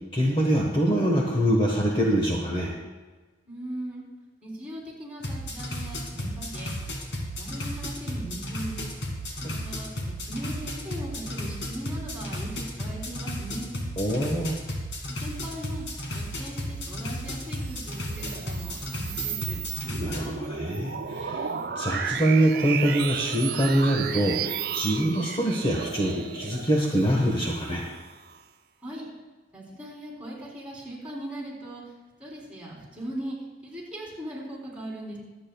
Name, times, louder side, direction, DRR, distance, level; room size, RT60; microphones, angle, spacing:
voice 1, 0.1-2.7 9.4-9.5 14.0-14.5 20.0-27.8, right 1 dB, 30° left, -2 dB, 1.4 m, -24 dB
voice 2, 3.4-4.0 4.4-6.7 7.4-8.8 9.5-13.7 15.2-15.9 16.1-19.6 28.8-29.0 29.5-31.9 32.2-33.4 33.6-35.2, right 1 dB, 10° right, -5 dB, 3.8 m, -39 dB
sound 1, 5.2-20.2, equal, 90° left, 2.4 m, -34 dB
sound 2, 17.5-28.4, right 8 dB, 60° right, 0.6 m, -34 dB
24.0 x 8.9 x 2.4 m, 1.3 s
head